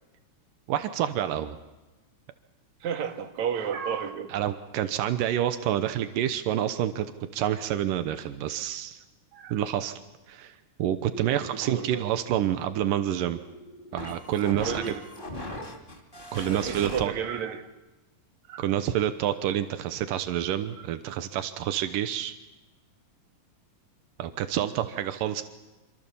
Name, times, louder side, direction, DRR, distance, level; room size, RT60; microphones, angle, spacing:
voice 1, 0.7-1.6 4.3-7.1 7.3-9.0 9.5-10.0 10.3-10.5 10.8-13.4 13.9-14.8 16.3-17.1 18.6-22.3 24.2-25.4, right 11 dB, 90° right, 2.7 m, -28 dB
voice 2, 2.8-4.3 9.3-9.5 11.6-12.0 14.5-15.0 16.5-17.7 18.5-18.6, right 7 dB, 60° right, 3.0 m, -32 dB
sound 1, 11.1-17.0, left 1 dB, 15° left, 2.3 m, -40 dB
27.0 x 25.0 x 7.1 m
omnidirectional pair, 3.8 m